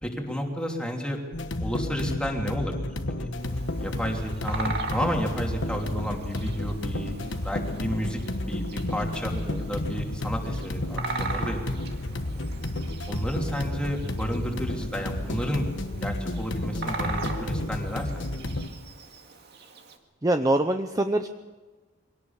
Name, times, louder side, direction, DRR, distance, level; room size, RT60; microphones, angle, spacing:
voice 1, 0.0-1.2 1.6-3.3 3.8-7.1 7.4-8.2 8.5-9.3 9.7-11.9 12.2-12.5 13.1-15.7 16.0-18.4, equal, 5° left, 1 dB, 3.0 m, -32 dB
sound 1, 1.3-18.7, left 1 dB, 65° left, 1.3 m, -31 dB
Bird vocalization bird call bird song, 3.4-20.0, right 3 dB, 55° right, 2.2 m, -40 dB
voice 2, 9.3-9.6 20.2-21.3, right 1 dB, 20° right, 7 dB, 0.7 m, -24 dB
23.0 x 18.0 x 7.2 m, 1.3 s
head